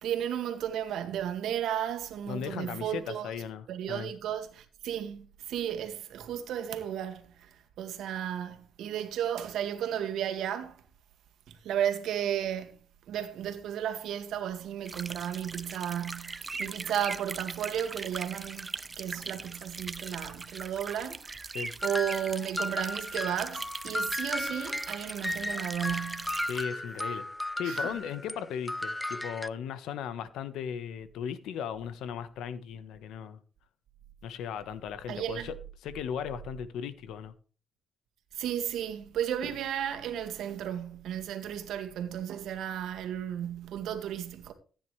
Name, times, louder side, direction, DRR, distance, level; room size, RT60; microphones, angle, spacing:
voice 1, 0.0-3.3 3.7-10.8 11.5-12.8 13.1-21.4 21.8-26.4 27.6-27.8 35.1-35.5 38.3-44.5, right 10 dB, 80° right, 2.0 m, -34 dB
voice 2, 2.3-4.1 21.5-21.7 26.5-27.2 27.6-33.4 34.2-35.6 35.8-37.3, left 8 dB, 85° left, 1.2 m, -37 dB
sound 1, 14.9-26.6, right 3 dB, 25° right, 0.8 m, -40 dB
sound 2, 21.8-28.4 28.7-29.5, left 1 dB, 10° left, 0.5 m, -35 dB
15.0 x 9.5 x 3.3 m
cardioid pair, 90°, 0 cm